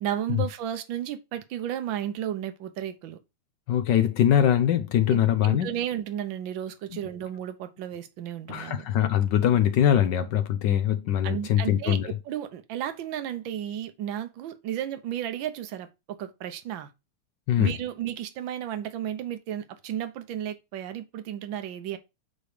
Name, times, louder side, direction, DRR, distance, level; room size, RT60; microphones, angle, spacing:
voice 1, 0.0-3.2 5.1-8.8 11.2-16.9 17.6-22.0, right 10 dB, 70° right, 1.6 m, -33 dB
voice 2, 3.7-5.8 8.5-12.1 17.5-17.7, left 10 dB, 70° left, 1.2 m, -22 dB
8.2 x 3.1 x 5.0 m
omnidirectional pair, 2.4 m